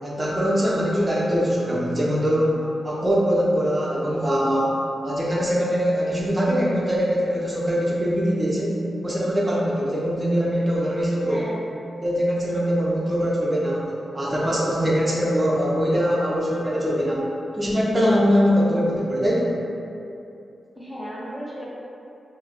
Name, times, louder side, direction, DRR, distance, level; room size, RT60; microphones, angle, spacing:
voice 1, 0.0-4.8 5.0-11.4 12.0-17.3 17.5-19.6, equal, 20° right, -5 dB, 0.4 m, -22 dB
voice 2, 11.2-11.6 20.7-21.7, equal, 20° left, -7 dB, 0.7 m, -34 dB
2.9 x 2.0 x 2.4 m, 2.6 s
cardioid pair, 65°, 0 cm